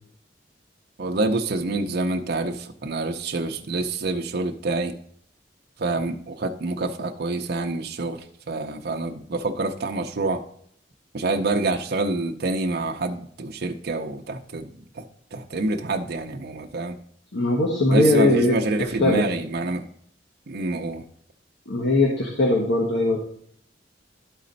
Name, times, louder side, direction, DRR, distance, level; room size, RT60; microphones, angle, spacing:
voice 1, 1.0-4.9 5.8-10.4 11.1-15.0 15.3-17.0 17.9-19.8 20.5-21.0, right 2 dB, 60° right, 3 dB, 0.6 m, -27 dB
voice 2, 17.3-19.2 21.7-23.2, left 2 dB, 85° left, 0 dB, 1.3 m, -20 dB
12.5 x 4.2 x 4.0 m, 0.64 s
head